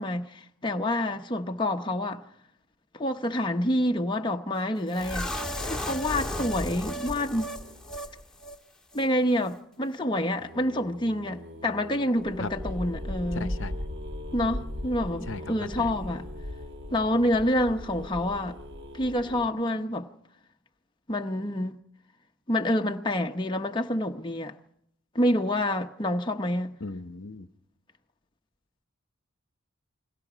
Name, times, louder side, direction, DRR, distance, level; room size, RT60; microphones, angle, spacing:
voice 1, 0.0-2.2 2.9-5.3 5.6-7.5 8.9-13.6 14.3-16.2 16.9-18.6 18.9-20.1 21.1-21.8 22.5-24.5 25.1-26.8, left 1 dB, 20° left, 0.8 m, -27 dB
sound 1, 4.9-8.1 8.4-8.6 8.9-9.0, left 1 dB, 5° left, 1.6 m, -34 dB
sound 2, 7.6-8.2 10.4-19.5, left 1 dB, 50° right, 1.7 m, -38 dB
voice 2, 13.3-13.7 15.3-15.7 26.8-27.5, left 3 dB, 60° left, 0.8 m, -36 dB
29.0 x 21.5 x 5.0 m
head